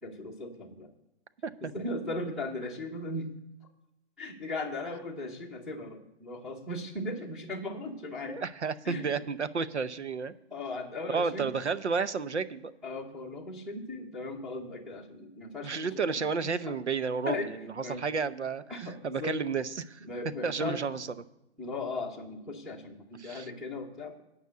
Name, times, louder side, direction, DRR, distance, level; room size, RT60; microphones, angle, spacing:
voice 1, 0.0-0.9 1.6-3.3 4.2-8.4 8.8-9.1 10.5-11.5 12.8-16.7 17.3-18.1 18.7-19.4 20.0-20.8 21.6-24.2, left 2 dB, ahead, -1 dB, 0.8 m, -38 dB
voice 2, 8.2-10.3 11.1-12.7 15.6-18.6 19.0-20.0 20.4-21.1 23.2-23.5, right 5 dB, 85° right, 14 dB, 0.9 m, -31 dB
9.3 x 5.4 x 8.0 m, 0.92 s
figure-of-eight pair, 145°, 34 cm